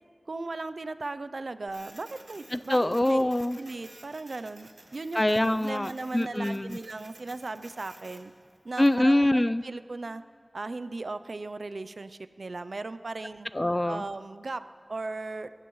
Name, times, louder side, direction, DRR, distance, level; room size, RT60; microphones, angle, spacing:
voice 1, 0.3-3.2 3.6-5.2 5.6-8.3 8.6-10.2 10.5-13.5 13.8-15.6, right 3 dB, 90° right, 11 dB, 0.5 m, -37 dB
Printer, 1.7-9.0, right 2 dB, 70° right, 1.5 m, -53 dB
voice 2, 2.5-3.6 5.1-6.8 8.8-9.6 13.5-14.0, left 1 dB, 25° left, 14 dB, 0.5 m, -24 dB
29.5 x 15.5 x 3.2 m, 2.1 s
wide cardioid pair, 50°, 0 cm